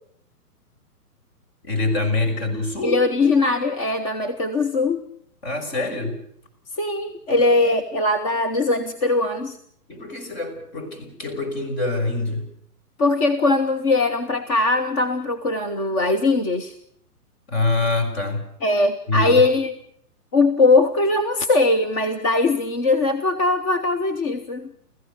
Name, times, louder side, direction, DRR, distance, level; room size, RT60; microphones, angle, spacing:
voice 1, 1.6-3.0 5.4-6.2 7.3-7.4 9.9-12.4 17.5-18.4 19.1-19.4, left 2 dB, 40° left, 6 dB, 6.0 m, -25 dB
voice 2, 2.8-5.0 5.7-5.8 6.8-9.6 13.0-16.7 18.6-19.8 20.3-24.7, left 3 dB, 20° left, 7 dB, 0.8 m, -20 dB
29.5 x 15.0 x 6.9 m, 0.68 s
hypercardioid pair, 150°, 47 cm